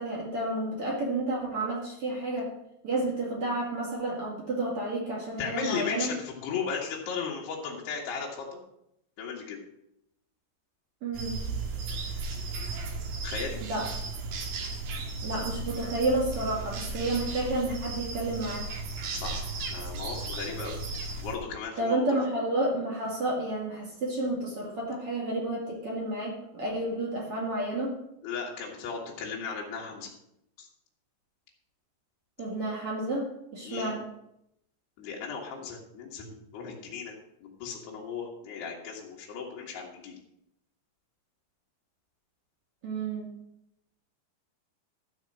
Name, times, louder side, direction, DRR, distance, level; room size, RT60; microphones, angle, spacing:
voice 1, 0.0-2.5 2.8-6.1 11.0-11.4 13.6-13.9 15.2-18.7 21.8-28.0 32.4-34.0 42.8-43.3, right 2 dB, 40° right, -3 dB, 2.9 m, -30 dB
voice 2, 5.4-8.6 9.2-9.6 13.2-13.6 19.1-19.4 19.7-20.8 21.2-22.2 28.2-30.1 30.6-30.7 33.7-33.9 35.0-37.1 37.4-40.1, left 6 dB, 70° left, -3 dB, 3.6 m, -36 dB
sound 1, 11.1-21.4, right 3 dB, 65° right, 3.0 m, -35 dB
13.0 x 4.8 x 7.6 m, 0.78 s
omnidirectional pair, 5.1 m